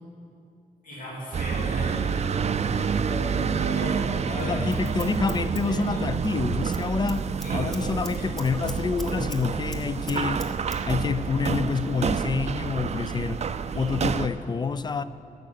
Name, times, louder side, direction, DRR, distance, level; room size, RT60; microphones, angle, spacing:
voice 1, 0.8-5.0 5.4-6.1 7.4-7.8 8.2-8.3, equal, 65° left, -5 dB, 2.7 m, -37 dB
sound 1, 1.3-14.3, right 6 dB, 45° right, 0.4 m, -28 dB
voice 2, 4.4-10.4 10.9-13.4 13.7-15.0, left 5 dB, 30° left, 14 dB, 0.3 m, -27 dB
Scissors, 4.4-6.3 6.6-6.8 7.1-9.4 9.7-10.8 11.1-11.2, equal, 5° left, 1.0 m, -41 dB
11.0 x 9.5 x 6.6 m, 2.6 s
wide cardioid pair, 150°, 15 cm